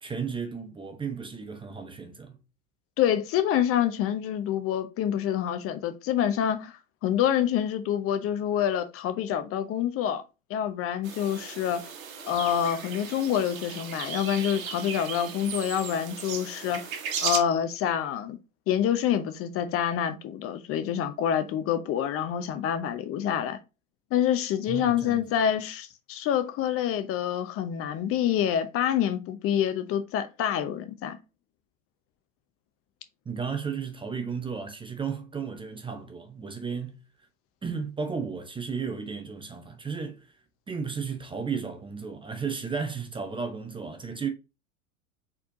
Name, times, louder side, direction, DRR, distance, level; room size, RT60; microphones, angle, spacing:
voice 1, 0.0-2.4 24.7-25.3 33.3-37.0 37.6-40.3 40.7-44.3, right 5 dB, 10° right, 0.7 m, -34 dB
voice 2, 3.0-10.2 10.5-11.8 12.2-16.8 17.2-18.4 18.7-23.6 24.1-31.2, left 10 dB, 35° left, 0.7 m, -27 dB
sound 1, 11.0-17.4, right 7 dB, 75° right, 1.3 m, -36 dB
4.3 x 4.2 x 2.7 m
hypercardioid pair, 95°, 41 cm